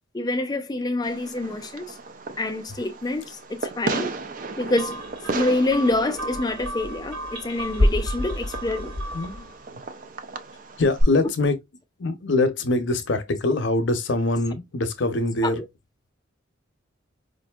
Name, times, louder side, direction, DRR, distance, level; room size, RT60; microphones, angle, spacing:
voice 1, 0.1-2.0 2.4-4.1 4.6-5.0 5.2-8.9 15.4-15.7, left 2 dB, 20° left, 0.4 m, -26 dB
Fireworks, 1.0-11.0, right 3 dB, 40° right, 0.4 m, -34 dB
sound 1, 4.8-9.5, left 1 dB, 85° right, 1.7 m, -29 dB
voice 2, 9.1-9.5 10.8-11.6 12.0-15.6, left 2 dB, 65° left, 0.7 m, -23 dB
5.0 x 2.6 x 2.3 m
head